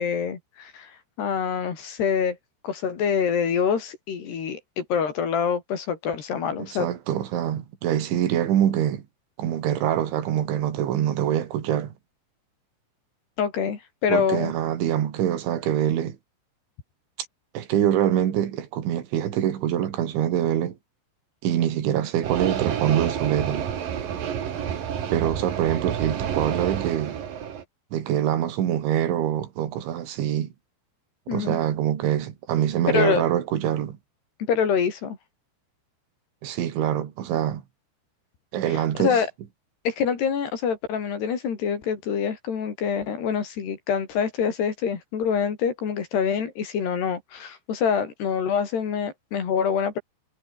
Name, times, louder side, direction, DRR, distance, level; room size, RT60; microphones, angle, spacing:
voice 1, 0.0-2.4 2.6-6.9 13.4-14.5 31.3-31.6 32.9-33.2 34.5-35.2 38.7-39.3 39.9-50.0, left 7 dB, 60° left, 5.6 m, -26 dB
voice 2, 6.6-9.0 9.4-11.9 14.1-16.2 17.5-20.8 21.4-23.7 25.1-27.2 27.9-30.5 31.3-34.0 36.4-37.6 38.5-39.2, right 10 dB, 80° right, 4.9 m, -24 dB
sound 1, 22.2-27.6, right 8 dB, 55° right, 3.8 m, -29 dB
omnidirectional pair, 5.4 m